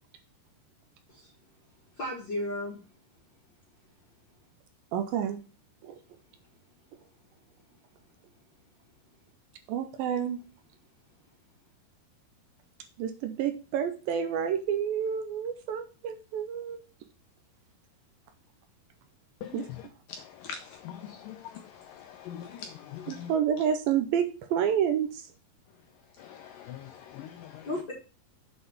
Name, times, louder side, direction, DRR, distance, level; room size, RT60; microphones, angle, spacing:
voice 1, 2.0-2.8 27.6-27.9, left 1 dB, 55° left, 1.2 m, -33 dB
voice 2, 4.9-5.4 5.8-6.0 9.7-10.4 13.0-16.8 19.5-19.6 23.1-25.2, right 8 dB, 80° right, 2.3 m, -29 dB
voice 3, 19.4-23.3 26.2-27.7, left 8 dB, 85° left, 1.9 m, -43 dB
7.8 x 4.1 x 6.7 m
omnidirectional pair, 4.6 m